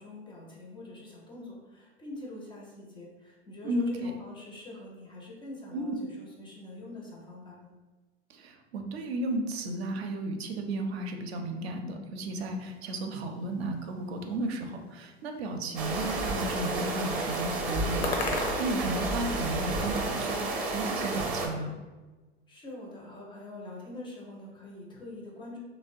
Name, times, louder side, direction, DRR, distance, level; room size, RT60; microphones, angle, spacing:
voice 1, 0.0-7.7 22.5-25.6, left 2 dB, 15° left, -2 dB, 0.4 m, -44 dB
voice 2, 3.6-4.1 5.7-5.9 8.3-21.7, right 1 dB, 70° right, 4 dB, 0.5 m, -34 dB
sound 1, 12.4-19.6, left 3 dB, 70° left, 0.6 m, -41 dB
sound 2, 15.8-21.5, right 2 dB, 25° right, 0.6 m, -31 dB
2.8 x 2.0 x 2.5 m, 1.2 s
hypercardioid pair, 90°, 33 cm